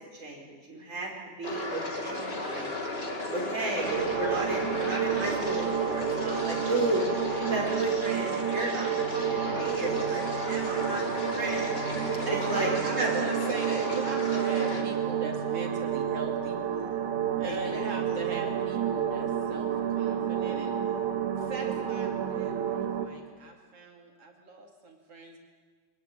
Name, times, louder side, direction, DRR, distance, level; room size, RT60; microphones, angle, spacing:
voice 1, 0.1-1.1 1.4-2.7 3.3-7.0 7.3-11.8 12.3-13.2 17.4-17.9, right 2 dB, 25° right, -1 dB, 5.2 m, -33 dB
sound 1, 1.4-14.8, left 2 dB, 20° left, 2.3 m, -35 dB
sound 2, 3.9-23.1, right 8 dB, 85° right, 3.0 m, -30 dB
voice 2, 12.1-16.6 17.4-20.8 21.4-25.4, right 3 dB, 50° right, 2 dB, 3.3 m, -39 dB
24.0 x 19.0 x 8.9 m, 1.5 s
omnidirectional pair, 3.5 m